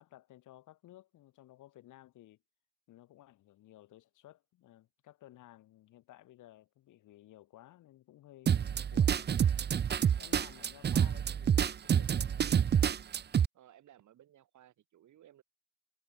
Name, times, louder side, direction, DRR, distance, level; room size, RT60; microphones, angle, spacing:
voice 1, 0.0-2.4 2.9-9.3 10.2-12.7, left 14 dB, 85° left, 7.7 m, -57 dB
sound 1, 8.5-13.5, right 8 dB, 35° right, 0.6 m, -28 dB
voice 2, 13.5-15.4, right 11 dB, 75° right, 6.5 m, -60 dB
cardioid pair, 90°, 30 cm